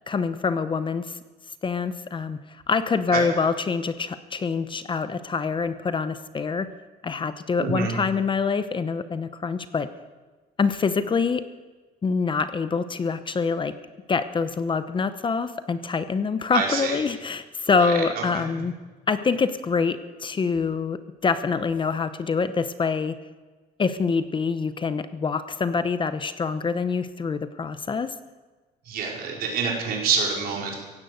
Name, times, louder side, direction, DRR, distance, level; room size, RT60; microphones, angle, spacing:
voice 1, 0.1-1.2 1.6-2.4 2.7-6.7 7.0-9.9 10.6-11.4 12.0-13.7 14.1-18.7 19.1-23.2 23.8-28.1, left 5 dB, 30° left, 12 dB, 0.8 m, -25 dB
voice 2, 7.6-7.9 16.5-17.0 17.7-18.4 28.8-30.7, right 5 dB, 65° right, -2 dB, 4.9 m, -27 dB
16.0 x 10.5 x 8.0 m, 1.3 s
cardioid pair, 110°, 17 cm